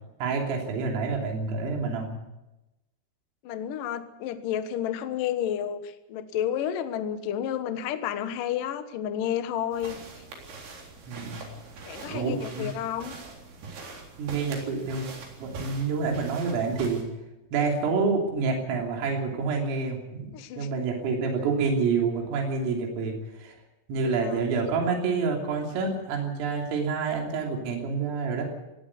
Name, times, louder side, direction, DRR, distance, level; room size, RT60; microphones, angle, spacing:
voice 1, 0.2-2.1 11.1-11.4 12.0-12.7 14.2-15.1 15.4-17.0 17.5-20.3 20.6-23.6 23.9-28.4, right 4 dB, 75° right, 1 dB, 5.7 m, -28 dB
voice 2, 3.4-10.0 11.8-13.1 20.3-20.7 24.0-24.4, left 10 dB, 75° left, 9 dB, 2.0 m, -31 dB
sound 1, 9.7-17.0, right 3 dB, 50° right, 5.5 m, -43 dB
18.5 x 17.5 x 8.4 m, 0.97 s
omnidirectional pair, 5.9 m